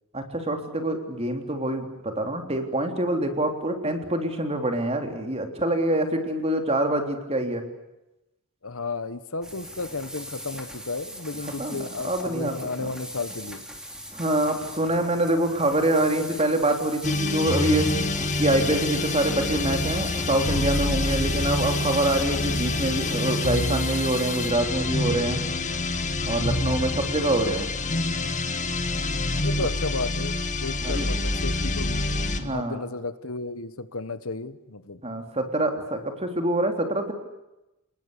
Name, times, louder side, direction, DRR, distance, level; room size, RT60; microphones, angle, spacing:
voice 1, 0.1-7.6 11.6-12.5 12.8-12.9 14.1-25.4 26.2-27.7 30.8-31.1 32.4-32.8 35.0-37.1, right 1 dB, 30° right, 5 dB, 3.6 m, -25 dB
voice 2, 8.6-13.6 29.4-35.0, left 3 dB, 70° left, 12 dB, 1.4 m, -33 dB
sound 1, 9.4-24.5, equal, 5° right, 3.5 m, -40 dB
sound 2, 17.0-32.5, left 2 dB, 35° left, 1.8 m, -27 dB
30.0 x 20.0 x 8.4 m, 0.94 s
head